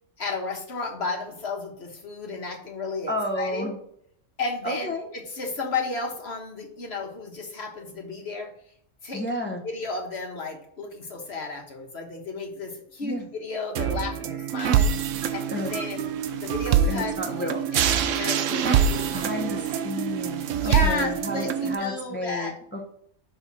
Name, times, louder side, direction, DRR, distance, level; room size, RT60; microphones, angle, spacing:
voice 1, 0.2-3.7 4.4-8.5 9.0-14.9 15.3-16.1 16.4-19.7 20.6-22.5, left 3 dB, 55° left, 2 dB, 1.6 m, -33 dB
voice 2, 3.1-3.8 4.6-5.1 9.1-9.6 13.0-13.2 15.5-15.8 16.9-17.6 19.1-22.9, left 1 dB, 10° left, 1 dB, 0.9 m, -32 dB
sound 1, 13.8-21.8, right 8 dB, 80° right, 1.0 m, -25 dB
6.2 x 4.3 x 6.1 m, 0.68 s
omnidirectional pair, 1.3 m